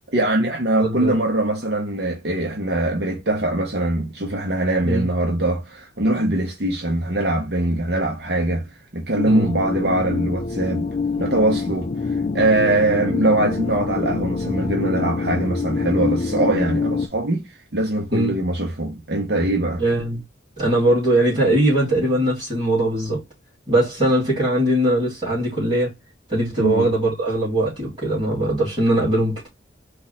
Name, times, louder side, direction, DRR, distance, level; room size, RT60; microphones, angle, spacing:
voice 1, 0.1-8.7 8.9-10.9 11.2-19.8 26.6-26.9, right 1 dB, 60° right, 0.9 m, -22 dB
voice 2, 0.8-1.1 4.8-5.1 9.2-9.5 18.1-18.4 19.8-20.2 20.6-23.2 23.7-25.9 26.3-29.5, right 1 dB, 25° right, 2.9 m, -20 dB
sound 1, 9.2-17.1, left 4 dB, 35° left, 0.3 m, -25 dB
4.6 x 2.5 x 4.1 m
head